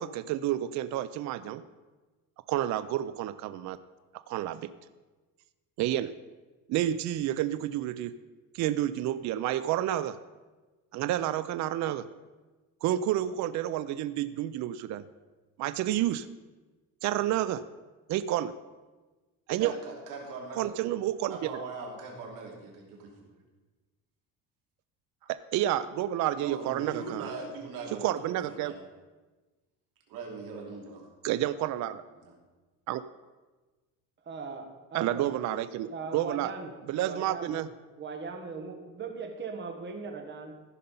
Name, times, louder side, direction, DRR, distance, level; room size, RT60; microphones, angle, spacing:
voice 1, 0.0-1.6 2.5-3.8 4.3-4.7 5.8-6.1 6.7-8.2 8.5-10.2 10.9-12.0 12.8-15.0 15.6-16.3 17.0-17.6 18.1-18.5 19.5-19.8 20.6-21.6 25.3-27.3 28.0-28.7 31.2-31.9 32.9-33.0 34.9-36.5 36.9-37.7, right 12 dB, 60° right, 14 dB, 0.5 m, -30 dB
voice 2, 19.6-20.7 21.3-23.1 26.4-28.8 30.1-31.0 32.2-32.3, right 4 dB, 75° right, -1 dB, 3.0 m, -40 dB
voice 3, 34.2-35.3 35.9-36.8 37.0-37.6 38.0-40.5, right 4 dB, 35° right, 5 dB, 1.4 m, -39 dB
15.0 x 5.5 x 5.4 m, 1.3 s
cardioid pair, 135°, 33 cm